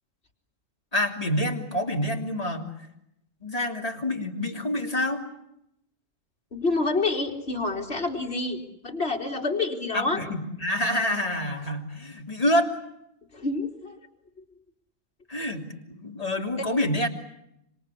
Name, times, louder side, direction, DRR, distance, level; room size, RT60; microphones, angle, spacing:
voice 1, 0.9-2.7 3.4-5.2 9.9-12.7 15.3-17.1, left 1 dB, 30° left, 1 dB, 3.3 m, -27 dB
voice 2, 6.5-10.2 13.3-14.0, left 3 dB, 50° left, 0 dB, 3.6 m, -28 dB
26.5 x 26.5 x 8.5 m, 0.82 s
omnidirectional pair, 1.3 m